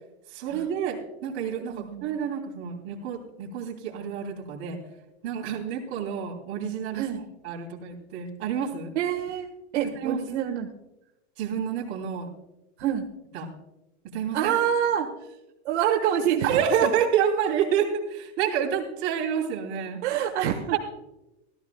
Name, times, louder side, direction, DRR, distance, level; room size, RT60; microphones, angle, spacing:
voice 1, 0.3-4.8 5.2-7.1 7.4-8.9 9.8-10.2 11.4-12.3 13.3-13.5 14.0-14.5 16.4-20.0 20.7-20.8, right 8 dB, 40° right, -1 dB, 3.2 m, -28 dB
voice 2, 1.7-2.0 6.9-7.2 8.9-9.5 9.7-10.7 12.8-13.0 14.3-15.1 15.6-16.9 20.0-20.8, right 9 dB, 70° right, 0 dB, 1.5 m, -26 dB
17.0 x 14.0 x 2.3 m, 0.93 s
supercardioid pair, 160°, 35 cm